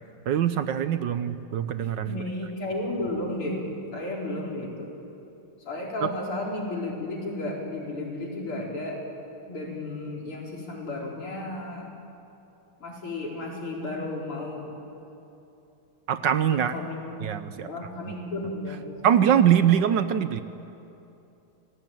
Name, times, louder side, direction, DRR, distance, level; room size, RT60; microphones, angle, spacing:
voice 1, 0.3-2.2 6.0-6.1 16.1-16.7 17.2-17.7 18.1-18.2 19.0-20.4, right 9 dB, 65° right, 11 dB, 1.3 m, -23 dB
voice 2, 2.0-3.6 3.9-4.9 5.7-9.0 9.5-11.9 12.8-14.6 16.5-17.1 17.6-18.9, left 2 dB, 80° left, -2 dB, 5.4 m, -33 dB
28.0 x 18.5 x 9.0 m, 2.9 s
omnidirectional pair, 2.3 m